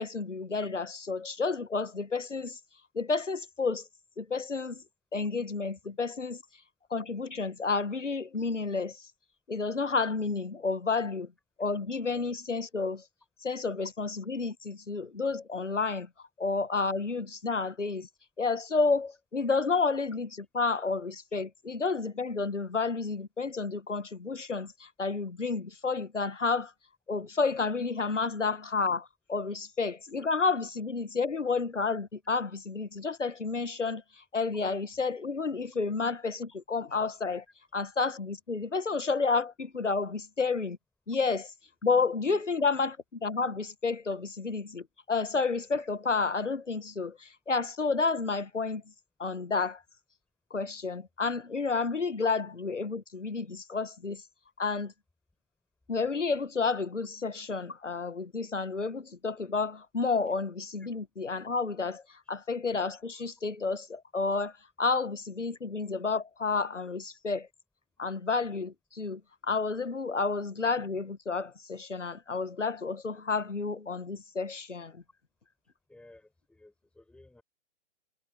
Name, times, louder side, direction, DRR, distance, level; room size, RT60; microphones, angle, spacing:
voice 1, 0.0-2.6 2.9-3.9 4.2-4.8 5.1-6.4 6.9-9.1 9.5-11.3 11.6-13.0 13.4-18.1 18.4-26.7 27.1-37.4 37.7-40.8 41.1-41.5 41.8-48.8 49.2-49.8 50.5-54.2 54.6-54.9 55.9-67.5 68.0-75.0, left 4 dB, 90° left, 1.3 m, -31 dB
voice 2, 75.9-77.4, left 2 dB, 5° left, 5.4 m, -56 dB
figure-of-eight pair, 130°, 36 cm